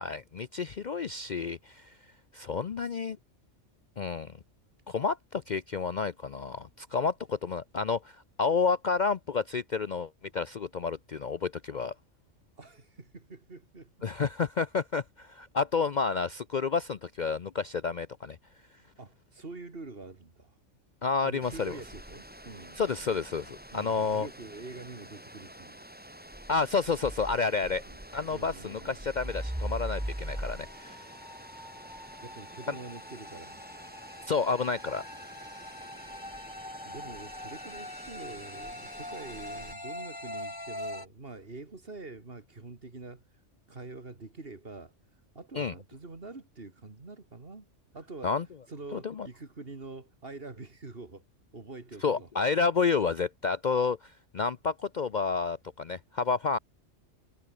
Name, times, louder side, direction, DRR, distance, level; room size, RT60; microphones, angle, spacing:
voice 1, 0.0-2.0 2.3-3.2 4.0-4.3 4.9-11.9 14.0-18.4 21.0-21.7 22.8-24.3 26.5-27.8 28.1-31.1 34.3-35.0 45.6-45.7 48.2-48.4 49.0-49.3 52.0-56.6, left 5 dB, 45° left, 0.7 m, -30 dB
voice 2, 12.6-14.1 19.0-20.5 21.2-22.8 23.7-25.8 27.7-28.0 28.3-29.1 32.2-33.6 36.8-43.2 43.7-44.9 45.3-47.7 47.9-48.3 48.7-51.2 51.5-52.3, right 3 dB, 50° right, 2.8 m, -45 dB
sound 1, 21.4-39.7, right 1 dB, 5° right, 2.5 m, -43 dB
sound 2, 29.2-41.1, left 1 dB, 15° left, 3.0 m, -44 dB
omnidirectional pair, 1.3 m